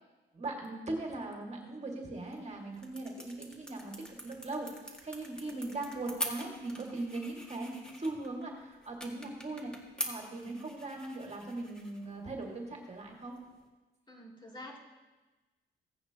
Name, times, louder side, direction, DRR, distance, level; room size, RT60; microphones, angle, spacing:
voice 1, 0.3-9.7 10.0-13.4, right 2 dB, 35° right, 0 dB, 2.0 m, -39 dB
sound 1, 2.1-13.7, equal, 5° left, 2.0 m, -45 dB
voice 2, 5.2-5.8 14.1-14.8, left 1 dB, 25° left, -3 dB, 2.9 m, -49 dB
16.0 x 9.2 x 2.9 m, 1.2 s
cardioid pair, 90°, 20 cm